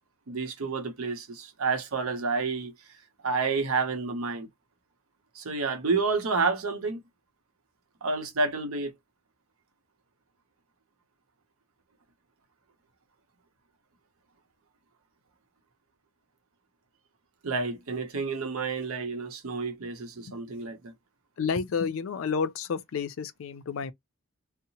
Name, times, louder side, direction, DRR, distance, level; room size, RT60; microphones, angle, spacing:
voice 1, 0.3-2.7 3.2-4.5 5.3-7.0 8.0-8.9 17.4-20.9, right 4 dB, 85° right, 0.7 m, -29 dB
voice 2, 21.4-23.9, left 5 dB, 70° left, 0.4 m, -30 dB
2.8 x 2.0 x 2.8 m
head